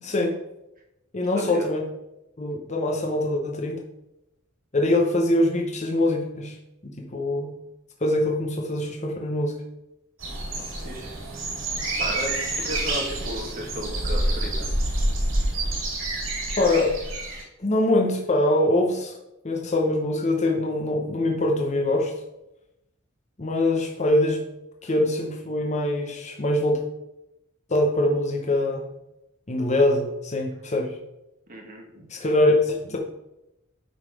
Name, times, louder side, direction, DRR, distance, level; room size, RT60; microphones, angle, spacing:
voice 1, 0.0-0.4 1.1-1.8 2.4-3.8 4.7-6.6 6.8-7.5 8.0-9.6 16.6-17.0 17.6-19.1 19.4-22.1 23.4-24.4 24.8-26.8 27.7-28.9 29.5-31.0 32.1-33.0, left 1 dB, 35° left, 1 dB, 0.9 m, -23 dB
sound 1, 10.2-17.4, right 1 dB, 85° right, 2.4 m, -28 dB
voice 2, 10.6-11.1 12.0-14.7 31.5-32.1, equal, 45° right, 0 dB, 1.6 m, -34 dB
9.0 x 4.1 x 4.8 m, 0.90 s
head